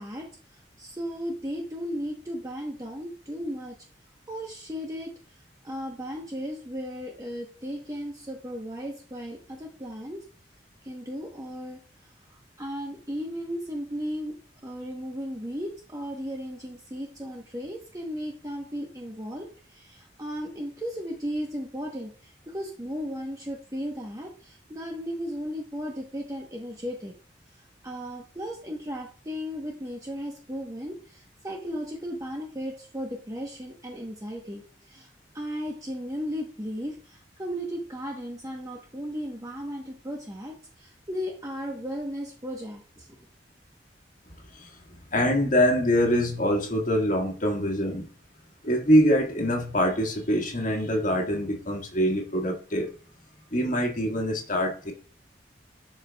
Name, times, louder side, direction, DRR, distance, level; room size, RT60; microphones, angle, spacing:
voice 1, 0.0-3.8 4.3-5.1 5.6-10.2 10.8-14.4 14.6-27.1 27.5-43.2, equal, 20° right, 0 dB, 1.0 m, -35 dB
voice 2, 45.1-48.1 48.6-52.9 53.5-54.9, equal, 45° left, 0 dB, 1.6 m, -24 dB
11.0 x 4.7 x 2.3 m, 0.40 s
head